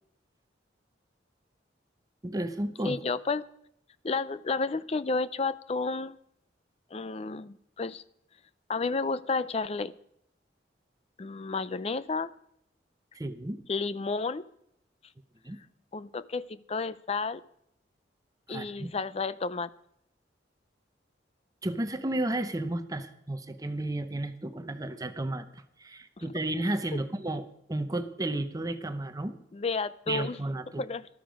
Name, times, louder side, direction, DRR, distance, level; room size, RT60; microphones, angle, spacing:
voice 1, 2.2-3.0 13.1-13.6 15.4-15.6 18.5-18.9 21.6-29.4 30.1-30.8, right 1 dB, 20° right, 10 dB, 0.8 m, -33 dB
voice 2, 2.8-3.4 4.0-6.2 6.9-8.0 8.7-9.9 11.2-12.3 13.7-14.4 15.9-17.4 18.5-19.7 26.2-26.3 29.5-30.4 30.7-31.1, left 4 dB, 35° left, 16 dB, 0.4 m, -31 dB
14.0 x 12.0 x 5.2 m, 0.73 s
head